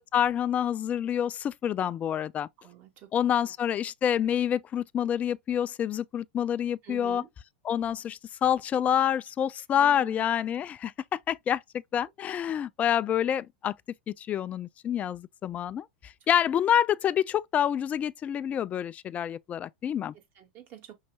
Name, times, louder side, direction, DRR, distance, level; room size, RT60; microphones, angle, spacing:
voice 1, 0.1-2.5 3.1-7.2 7.6-11.6 11.9-13.7 14.1-20.1, left 9 dB, 30° left, 0.3 m, -27 dB
voice 2, 2.6-3.1 6.8-7.3 8.9-9.2 9.7-10.3 12.5-12.6 16.2-16.3 20.1-20.9, right 12 dB, 45° right, 2.1 m, -48 dB
5.5 x 2.9 x 2.4 m
hypercardioid pair, 105°, 5 cm